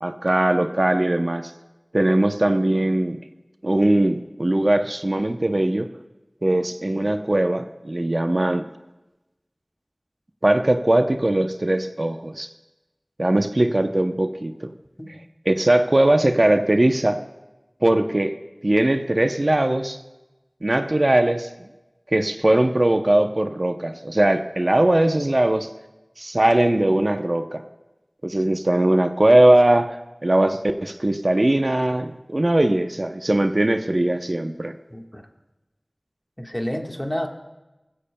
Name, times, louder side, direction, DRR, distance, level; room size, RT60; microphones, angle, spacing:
voice 1, 0.0-1.5 1.9-3.2 3.6-5.9 6.4-8.7 10.4-12.5 13.2-14.7 15.5-17.2 17.8-18.3 18.6-20.0 20.6-21.7 22.1-25.7 26.2-27.6 28.2-34.8, right 1 dB, 60° right, 7 dB, 0.6 m, -20 dB
voice 2, 34.9-35.2 36.4-37.3, equal, 15° left, 2 dB, 1.4 m, -29 dB
20.5 x 15.5 x 2.2 m, 1.0 s
wide cardioid pair, 40°, 0 cm